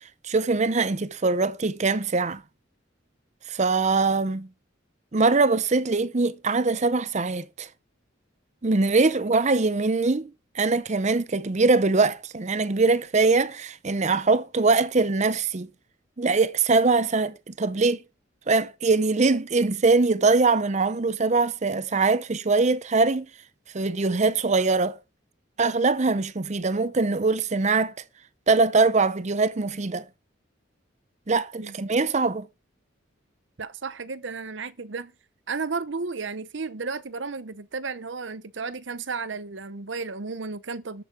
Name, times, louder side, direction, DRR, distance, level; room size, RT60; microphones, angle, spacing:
voice 1, 0.2-2.4 3.5-4.5 5.1-7.7 8.6-15.7 16.2-18.0 18.5-23.3 23.7-25.0 25.6-27.9 28.5-30.1 31.3-32.5, right 3 dB, 35° right, 0.6 m, -22 dB
voice 2, 33.6-35.1 35.5-41.0, right 4 dB, 65° right, 0.8 m, -33 dB
13.0 x 8.3 x 6.0 m
head